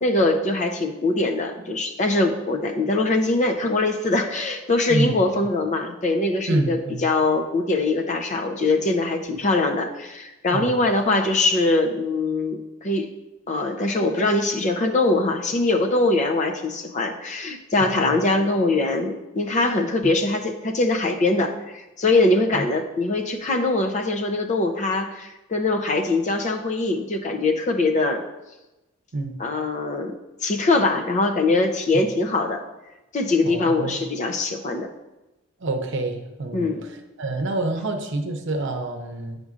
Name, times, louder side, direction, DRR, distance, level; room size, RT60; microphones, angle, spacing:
voice 1, 0.0-13.1 13.5-28.2 29.4-32.6 33.1-34.9 36.5-36.9, left 2 dB, 35° left, 3 dB, 0.5 m, -22 dB
voice 2, 4.9-5.4 6.5-7.0 10.5-10.8 17.8-18.2 29.1-29.4 31.9-32.0 33.4-34.0 35.6-36.9 37.2-39.4, right 2 dB, 60° right, 4 dB, 0.7 m, -27 dB
9.3 x 5.1 x 2.5 m, 1.0 s
head